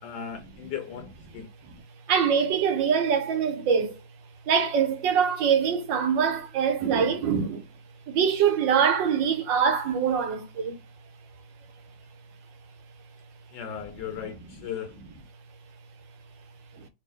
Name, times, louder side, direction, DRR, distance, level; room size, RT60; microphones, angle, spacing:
voice 1, 0.0-1.5 13.5-15.0, left 8 dB, 75° left, 1.2 m, -37 dB
voice 2, 2.1-4.0 4.5-7.6 8.1-10.8 16.7-16.8, right 7 dB, 80° right, 1.5 m, -24 dB
3.4 x 2.5 x 3.4 m
omnidirectional pair, 2.0 m